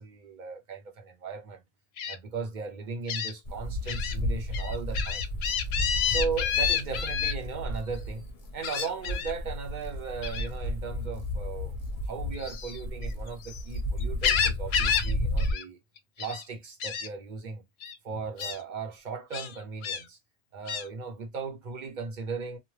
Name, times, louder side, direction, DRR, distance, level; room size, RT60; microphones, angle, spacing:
voice 1, 0.0-1.6 2.1-5.3 6.0-8.3 8.5-15.8 16.2-17.6 18.0-20.2 20.5-22.6, right 5 dB, 50° right, 0.8 m, -37 dB
Gull seagull, 2.0-2.2 3.1-3.3 3.9-4.1 4.5-7.3 8.6-9.3 10.2-10.5 12.4-13.6 14.0-15.1 15.4-15.6 16.0-16.4 16.8-17.1 17.8-18.0 18.4-18.6 19.3-20.0 20.7-20.9, left 8 dB, 75° left, 0.8 m, -29 dB
sound 1, 3.4-15.5, left 1 dB, 40° left, 0.8 m, -33 dB
2.5 x 2.1 x 3.1 m
omnidirectional pair, 1.1 m